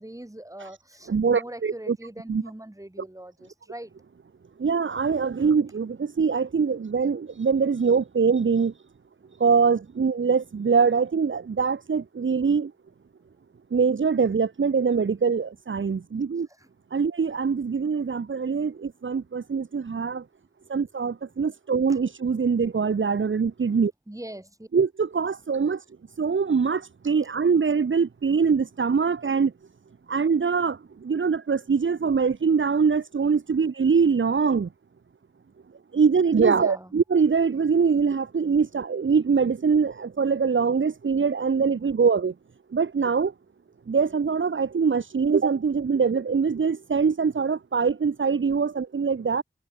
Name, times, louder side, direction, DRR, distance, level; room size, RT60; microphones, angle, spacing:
voice 1, 0.0-3.9 16.5-16.7 24.1-24.7 36.5-36.9, right 1 dB, 15° right, 6.3 m, -41 dB
voice 2, 1.1-2.0 2.3-2.4 4.6-8.7 9.4-12.7 13.7-16.5 16.9-20.2 20.7-23.9 24.7-25.8 26.2-29.5 30.1-34.7 35.9-42.3 42.7-43.3 43.9-49.4, right 5 dB, 70° right, 1.2 m, -23 dB
wide cardioid pair, 60°, 21 cm